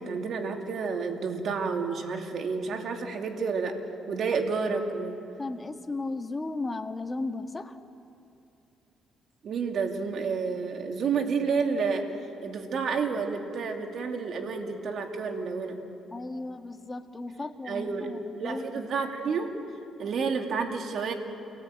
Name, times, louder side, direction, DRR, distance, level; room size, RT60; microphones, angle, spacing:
voice 1, 0.0-3.7 4.1-5.2 9.4-12.1 12.4-15.8 17.6-18.1 18.3-19.5 20.0-21.1, right 5 dB, 65° right, 3 dB, 2.5 m, -30 dB
voice 2, 5.4-7.8 16.1-18.9 19.2-19.4 20.0-20.2, left 2 dB, 25° left, 6 dB, 1.6 m, -35 dB
29.0 x 19.0 x 9.2 m, 2.7 s
cardioid pair, 90°, 0 cm